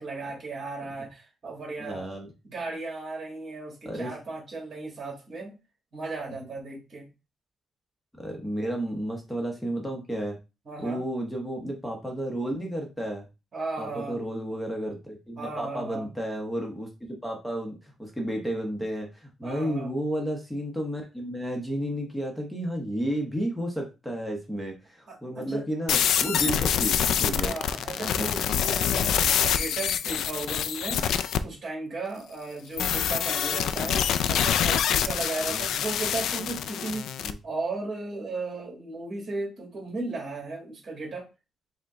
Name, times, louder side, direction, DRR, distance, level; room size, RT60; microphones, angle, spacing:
voice 1, 0.0-2.1 2.4-5.5 5.9-7.1 10.6-11.0 13.5-14.2 15.4-16.1 19.4-20.0 25.1-25.6 26.4-26.5 27.3-31.0 31.4-34.0 34.3-37.1 37.4-41.3, right 3 dB, 40° right, -1 dB, 1.7 m, -35 dB
voice 2, 1.8-2.3 3.8-4.1 8.2-10.4 10.8-13.2 13.8-27.6 28.0-28.3 33.7-34.0 35.5-35.6 37.2-37.4, right 1 dB, 5° left, 1 dB, 0.8 m, -32 dB
sound 1, 25.9-31.4 32.8-37.3, left 9 dB, 80° left, 0.3 m, -26 dB
5.0 x 2.1 x 3.6 m, 0.28 s
cardioid pair, 135°, 0 cm